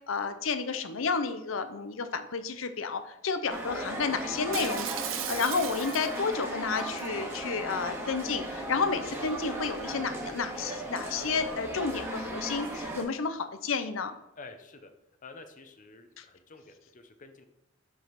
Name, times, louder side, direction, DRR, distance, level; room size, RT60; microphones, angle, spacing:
voice 1, 0.1-4.9 5.3-14.2 16.2-16.3, left 5 dB, 75° left, 10 dB, 0.6 m, -31 dB
sound 1, 3.5-13.0, right 1 dB, 15° right, 1.5 m, -37 dB
Shatter, 4.5-6.3 6.8-7.1, right 10 dB, 75° right, 0.7 m, -36 dB
voice 2, 14.4-14.9 15.2-17.5, left 3 dB, 40° left, 7 dB, 0.8 m, -49 dB
6.3 x 5.1 x 5.8 m, 0.87 s
head